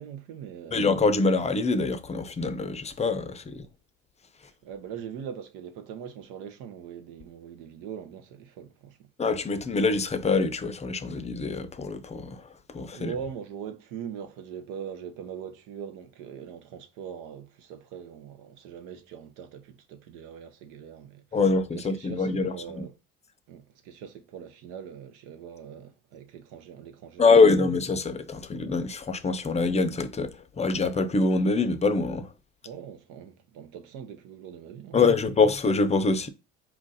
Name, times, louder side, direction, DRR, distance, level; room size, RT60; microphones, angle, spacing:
voice 1, 0.0-0.9 4.4-9.1 12.9-21.4 21.7-22.9 23.5-27.5 32.6-35.3, right 8 dB, 85° right, 0.8 m, -41 dB
voice 2, 0.7-3.7 9.2-12.4 12.7-13.1 21.3-22.9 27.2-32.3 34.9-36.3, left 4 dB, 20° left, 0.5 m, -24 dB
4.5 x 2.5 x 3.9 m
supercardioid pair, 90°, 31 cm